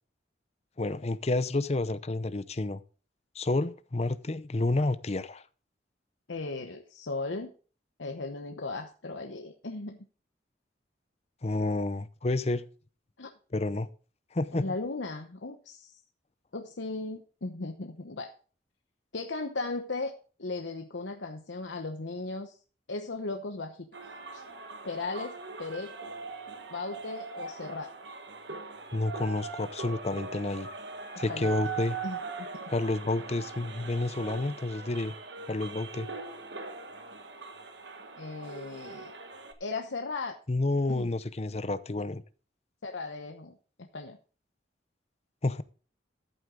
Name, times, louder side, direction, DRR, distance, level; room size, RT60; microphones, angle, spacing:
voice 1, 0.8-2.8 3.4-5.4 11.4-12.7 13.5-13.9 14.3-14.7 28.9-30.7 31.2-32.0 32.7-35.1 35.5-36.1 40.5-42.2 45.4-45.6, left 2 dB, 35° left, 0.7 m, -30 dB
voice 2, 6.3-7.5 8.0-10.0 13.2-13.3 14.5-16.0 16.5-18.3 19.1-22.6 22.9-23.9 24.3-24.4 24.8-26.0 26.7-27.9 28.5-28.6 31.3-31.6 32.0-32.2 32.5-32.6 38.2-39.1 39.6-40.4 40.9-41.1 42.8-44.2, left 3 dB, 85° left, 1.0 m, -37 dB
sound 1, 23.9-39.5, right 4 dB, 70° right, 1.5 m, -41 dB
13.5 x 8.0 x 3.8 m
head